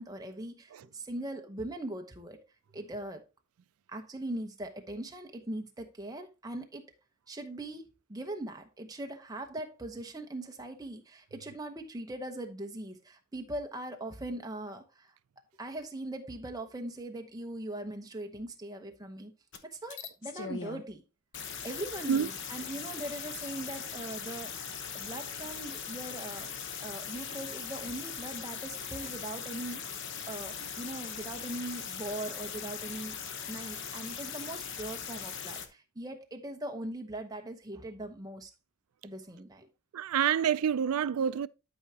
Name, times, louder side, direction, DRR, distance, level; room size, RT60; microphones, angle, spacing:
voice 1, 0.0-2.4 2.7-3.2 3.9-6.9 7.3-15.1 15.6-19.3 19.6-21.0 21.6-26.5 26.8-33.2 33.5-38.5 39.0-39.7, right 1 dB, 15° right, 1.0 m, -40 dB
sound 1, 19.5-19.6 19.9-20.8 21.3-35.7, left 7 dB, 55° left, 0.9 m, -40 dB
voice 2, 39.9-41.5, right 8 dB, 75° right, 0.4 m, -28 dB
12.0 x 4.8 x 2.8 m
head